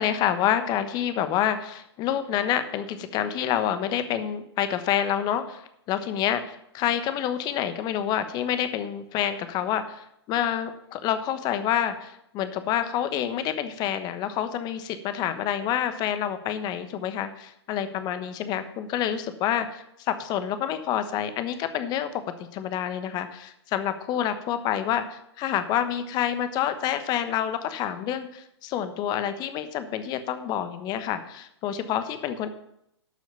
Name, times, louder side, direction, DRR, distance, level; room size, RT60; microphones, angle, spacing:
voice 1, 0.0-5.6 5.9-22.1 22.5-32.5, left 10 dB, 30° left, 10 dB, 1.1 m, -28 dB
12.0 x 6.2 x 6.8 m, 0.78 s
figure-of-eight pair, 115°, 14 cm